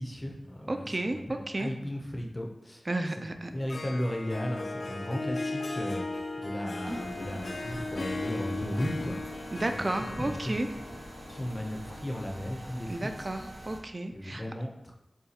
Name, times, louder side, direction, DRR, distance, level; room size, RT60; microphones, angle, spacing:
voice 1, 0.0-2.8 3.5-6.0 6.4-9.2 9.5-9.9 10.2-10.6 11.3-13.3 14.1-14.9, equal, 25° left, 1 dB, 0.6 m, -35 dB
voice 2, 0.7-1.7 2.9-3.5 9.5-10.7 12.9-14.4, right 2 dB, 40° right, 7 dB, 0.4 m, -32 dB
Harp, 3.4-12.4, left 2 dB, 70° left, 0.4 m, -37 dB
sound 1, 6.8-13.8, right 1 dB, 85° right, 0.9 m, -45 dB
6.8 x 2.3 x 2.8 m, 0.93 s
wide cardioid pair, 70°, 0 cm